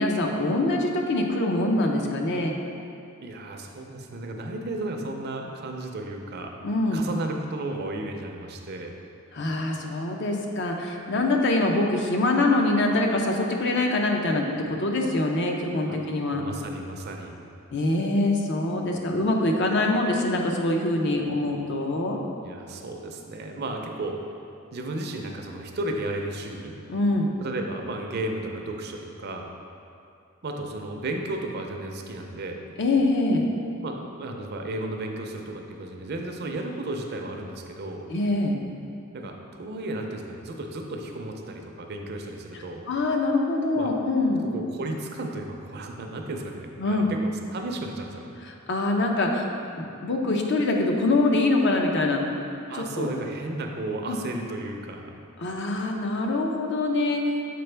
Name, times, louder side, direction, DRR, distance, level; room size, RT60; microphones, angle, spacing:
voice 1, 0.0-2.5 6.6-7.0 9.3-16.4 17.7-22.2 26.9-27.3 32.8-33.4 38.1-38.6 42.9-44.4 46.8-47.1 48.4-49.5 49.8-52.2 52.8-53.1 54.1-54.2 55.4-57.4, left 2 dB, 60° left, 1 dB, 0.6 m, -24 dB
voice 2, 3.2-6.5 6.9-8.9 15.9-16.0 16.3-17.4 22.4-24.2 24.7-26.8 27.4-29.5 30.4-32.7 33.8-38.1 39.1-42.9 43.7-43.9 44.4-48.3 52.7-55.2, right 2 dB, 50° right, 3 dB, 0.5 m, -34 dB
6.7 x 4.4 x 3.3 m, 2.5 s
head